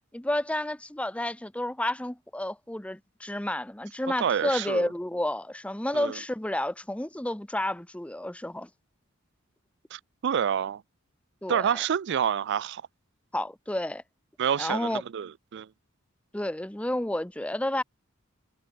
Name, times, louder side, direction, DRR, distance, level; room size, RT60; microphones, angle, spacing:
voice 1, 0.1-8.7 11.4-11.8 13.3-14.0 14.6-15.0 16.3-17.8, left 1 dB, 5° left, 0.7 m, -31 dB
voice 2, 4.2-4.9 5.9-6.2 9.9-10.8 11.5-12.8 14.4-15.7, right 8 dB, 55° right, 0.4 m, -28 dB
head